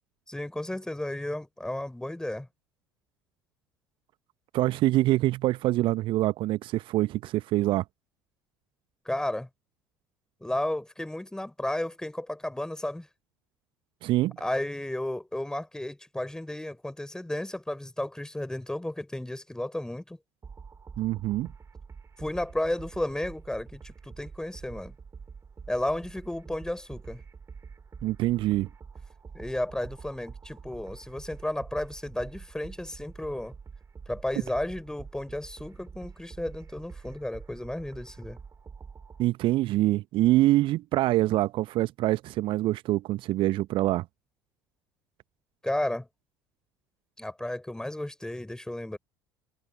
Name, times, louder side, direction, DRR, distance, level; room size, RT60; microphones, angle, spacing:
voice 1, 0.3-2.5 9.0-9.5 10.4-13.1 14.4-20.2 22.2-24.9 25.7-27.2 29.3-33.5 34.1-38.4 45.6-46.1 47.2-49.0, left 1 dB, 5° left, 4.9 m, -33 dB
voice 2, 4.5-7.8 14.0-14.4 21.0-21.5 28.0-28.7 39.2-44.1, right 16 dB, 50° right, 1.0 m, -25 dB
sound 1, 20.4-39.2, right 5 dB, 25° right, 3.5 m, -46 dB
figure-of-eight pair, 60°, 11 cm